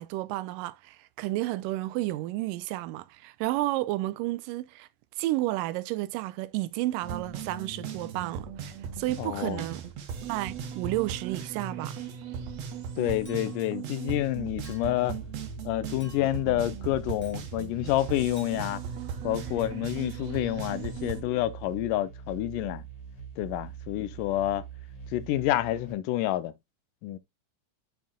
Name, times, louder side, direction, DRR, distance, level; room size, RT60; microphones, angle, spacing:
voice 1, 0.0-4.9 5.2-9.8 10.3-12.0, right 17 dB, 90° right, 2.2 m, -31 dB
sound 1, 7.0-21.2, right 7 dB, 65° right, 2.0 m, -38 dB
voice 2, 9.2-9.6 13.0-15.1 15.7-18.8 19.2-22.8 23.4-24.6 25.1-26.5 27.0-27.2, left 14 dB, 90° left, 2.2 m, -28 dB
Chink clink, 13.2-13.8 14.6-15.1 16.0-16.5 17.2-17.5 18.4-18.5, equal, 5° left, 1.0 m, -54 dB
sound 2, 14.3-25.9, right 7 dB, 30° left, 2.7 m, -43 dB
7.1 x 6.3 x 2.2 m
omnidirectional pair, 3.7 m